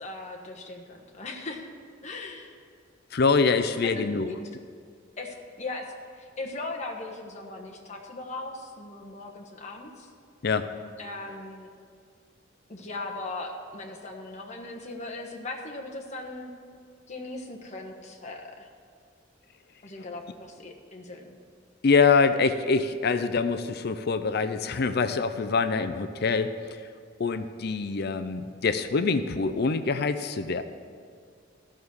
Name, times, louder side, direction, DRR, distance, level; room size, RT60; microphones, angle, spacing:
voice 1, 0.0-1.7 2.0-2.5 3.8-4.3 5.2-5.9 6.2-10.1 11.0-11.7 12.7-16.5 17.1-18.7 19.8-21.4, left 2 dB, 35° left, 1 dB, 1.3 m, -38 dB
voice 2, 3.1-4.3 10.4-10.7 21.8-26.8 27.2-30.6, left 4 dB, 55° left, 11 dB, 0.5 m, -25 dB
14.0 x 6.4 x 7.0 m, 2.1 s
head